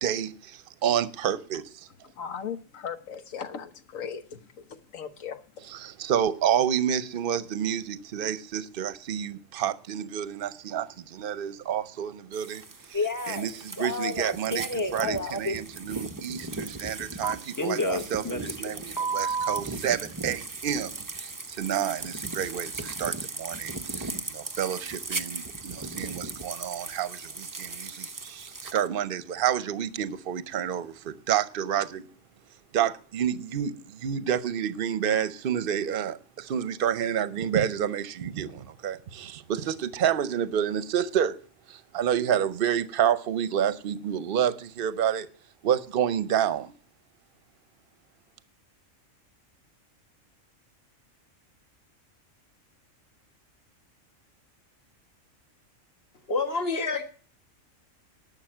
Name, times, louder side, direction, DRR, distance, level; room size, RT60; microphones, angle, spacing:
voice 1, 0.0-1.9 5.8-12.6 12.9-20.9 21.2-32.0 32.7-41.4 41.7-45.3 45.6-46.7, right 9 dB, 50° right, 0.8 m, -29 dB
voice 2, 1.9-5.7, left 7 dB, 80° left, 1.5 m, -38 dB
sound 1, 12.3-28.9, right 3 dB, 25° right, 0.4 m, -38 dB
Telephone, 12.9-13.5 13.8-15.5 17.2-18.7 19.0-19.6, equal, 15° left, 0.8 m, -29 dB
voice 3, 56.3-57.0, left 4 dB, 50° left, 2.0 m, -27 dB
11.5 x 6.8 x 7.6 m
omnidirectional pair, 1.4 m